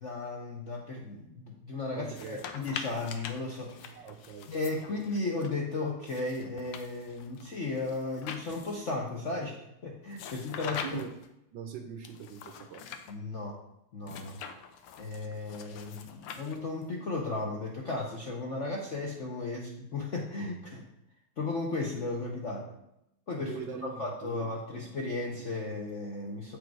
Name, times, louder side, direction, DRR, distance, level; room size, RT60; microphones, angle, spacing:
voice 1, 0.0-4.0 4.5-9.6 9.8-11.0 13.1-13.6 13.9-14.4 15.0-20.8 21.4-22.7 23.3-26.6, left 3 dB, 55° left, -1 dB, 0.8 m, -35 dB
voice 2, 1.9-2.4 4.0-4.5 4.9-5.0 10.8-11.1 11.5-12.8 23.4-25.4, right 7 dB, 70° right, 7 dB, 1.2 m, -43 dB
sound 1, 2.0-5.5 6.1-8.9 10.1-11.3 12.0-13.1 14.0-16.9, left 7 dB, 85° left, 1.6 m, -44 dB
8.0 x 5.2 x 4.7 m, 0.84 s
omnidirectional pair, 2.3 m